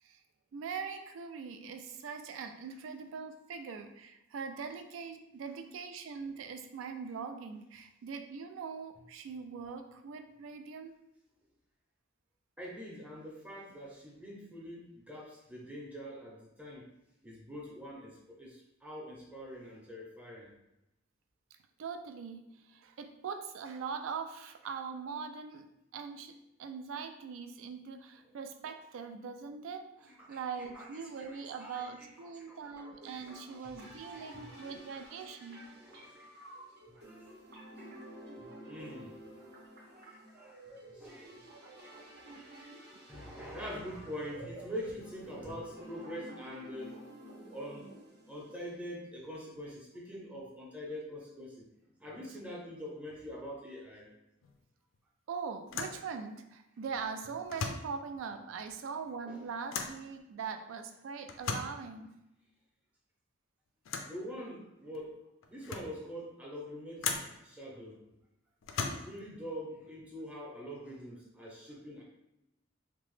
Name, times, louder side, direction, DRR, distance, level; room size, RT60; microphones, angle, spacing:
voice 1, 0.5-11.0 21.8-26.3 26.6-35.6 55.3-62.1, right 5 dB, 85° right, 8 dB, 0.3 m, -42 dB
voice 2, 12.6-16.9 17.2-20.5 30.3-33.3 33.6-34.6 34.9-36.5 36.9-37.3 38.4-47.1 47.4-47.9 48.3-51.7 52.0-54.1 59.3-59.5 64.1-65.2 65.5-68.0 68.8-72.0, equal, 5° right, -5 dB, 0.6 m, -45 dB
sound 1, 32.8-48.8, right 1 dB, 55° right, 0.7 m, -51 dB
sound 2, 54.4-54.6 54.9-55.0 55.7-56.0 57.4-58.0 59.7-60.0 61.3-61.8 63.9-64.2 64.9-65.0 65.4-66.0 67.0-67.4 68.6-69.3, left 5 dB, 90° left, 0.4 m, -37 dB
2.9 x 2.1 x 3.1 m, 0.88 s
head